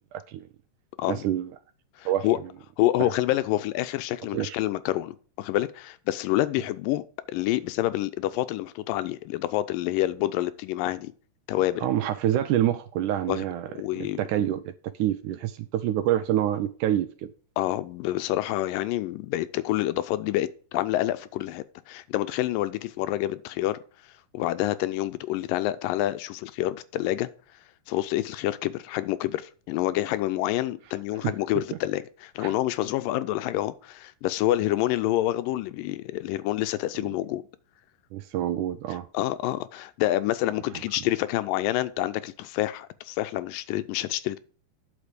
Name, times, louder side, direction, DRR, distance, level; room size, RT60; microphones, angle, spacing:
voice 1, 0.1-0.4 1.1-1.5 2.1-2.3 4.3-4.6 11.8-13.7 14.0-14.6 15.0-17.3 32.4-32.5 38.1-39.1, right 12 dB, 80° right, 1.9 m, -26 dB
voice 2, 2.0-2.4 2.8-7.0 7.3-11.1 11.5-11.9 13.3-13.4 13.7-14.2 17.6-23.8 24.3-27.3 27.9-37.4 39.1-44.4, left 15 dB, 85° left, 2.3 m, -27 dB
9.5 x 6.7 x 5.0 m
omnidirectional pair, 4.0 m